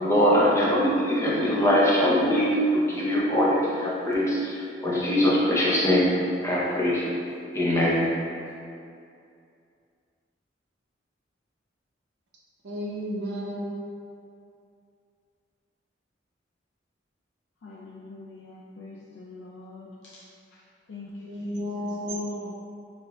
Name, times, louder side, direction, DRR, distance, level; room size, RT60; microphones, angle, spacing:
voice 1, 0.0-4.6 4.8-6.1 6.4-7.0 7.5-8.1, equal, 15° left, -6 dB, 0.7 m, -22 dB
voice 2, 12.6-13.7 21.2-22.5, equal, 70° right, -6 dB, 0.6 m, -32 dB
voice 3, 17.6-20.2 20.5-20.6 20.9-22.3, left 3 dB, 70° left, -4 dB, 0.4 m, -45 dB
6.6 x 2.6 x 2.3 m, 2.4 s
head